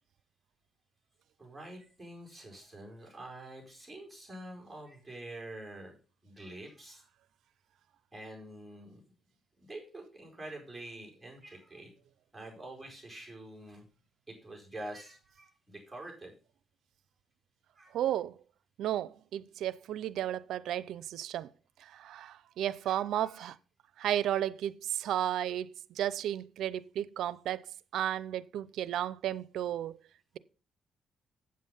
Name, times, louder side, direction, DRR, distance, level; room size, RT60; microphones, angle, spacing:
voice 1, 1.4-5.9 6.2-7.0 8.1-9.0 9.6-11.9 12.3-13.8 14.3-16.3 17.7-18.0 22.8-23.5, right 1 dB, 10° right, 4.6 m, -46 dB
voice 2, 17.9-18.3 18.8-21.5 21.8-23.6 24.0-27.6 27.9-29.9, right 11 dB, 80° right, 0.5 m, -33 dB
8.7 x 7.5 x 5.4 m
cardioid pair, 90°, 0 cm